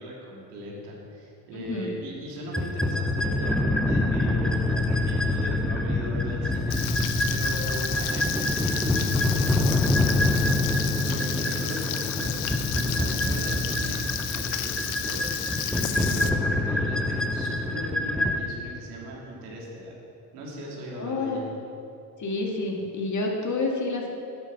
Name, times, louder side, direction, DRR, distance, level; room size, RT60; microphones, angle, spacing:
voice 1, 0.0-12.3 12.7-14.0 14.3-15.4 15.7-19.9 20.3-21.4, equal, 90° right, -3 dB, 2.9 m, -38 dB
voice 2, 1.5-1.9 21.0-21.5 22.2-24.1, left 3 dB, 40° left, 0 dB, 2.2 m, -29 dB
sound 1, 2.5-18.4, left 1 dB, ahead, 0.7 m, -26 dB
Frying (food), 6.7-16.3, left 13 dB, 75° left, 0.9 m, -33 dB
11.0 x 8.6 x 6.1 m, 2.6 s
supercardioid pair, 85°, 46 cm